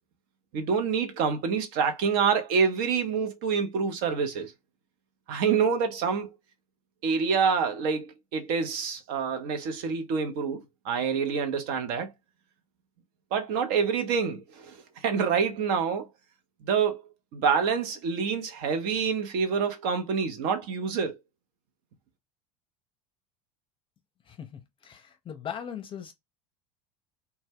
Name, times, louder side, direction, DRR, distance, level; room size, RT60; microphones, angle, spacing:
voice 1, 0.5-4.5 5.3-6.3 7.0-12.1 13.3-16.1 16.6-17.0 17.3-21.2, right 6 dB, 55° right, 0.7 m, -27 dB
voice 2, 24.3-26.1, left 8 dB, 30° left, 0.6 m, -39 dB
2.2 x 2.1 x 3.3 m
hypercardioid pair, 80°, 19 cm